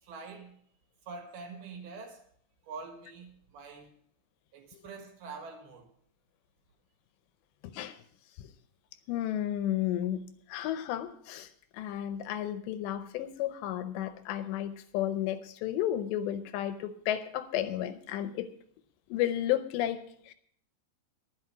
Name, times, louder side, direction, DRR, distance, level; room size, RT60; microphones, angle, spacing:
voice 1, 0.0-0.6 1.1-2.2 2.6-4.0 4.5-5.9, right 4 dB, 65° right, 3.2 m, -45 dB
voice 2, 7.6-8.0 9.1-11.5 11.7-18.5 19.1-20.3, left 12 dB, 80° left, 2.8 m, -32 dB
11.0 x 10.5 x 5.7 m
omnidirectional pair, 5.2 m